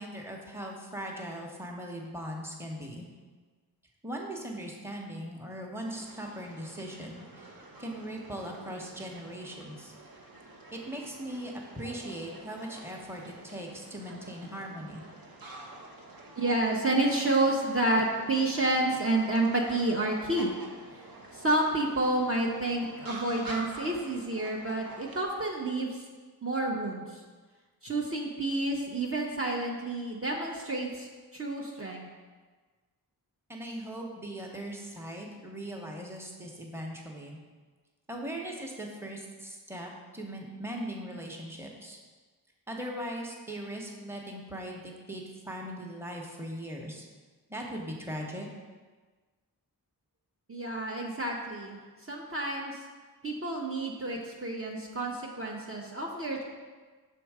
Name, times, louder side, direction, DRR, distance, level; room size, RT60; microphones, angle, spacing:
voice 1, 0.0-3.1 4.0-7.4 7.8-9.9 10.7-15.0 33.5-37.4 38.1-42.0 42.7-47.0 47.5-48.5, right 1 dB, 5° right, 0 dB, 1.0 m, -39 dB
sound 1, 5.8-25.3, right 2 dB, 60° right, 0.9 m, -48 dB
voice 2, 16.4-20.5 20.9-21.0 21.3-26.1 26.4-27.2 27.8-32.1 50.5-51.8 52.1-52.8 53.2-56.4, right 2 dB, 35° right, -2 dB, 0.8 m, -29 dB
6.0 x 3.6 x 4.8 m, 1.4 s
cardioid pair, 40°, 39 cm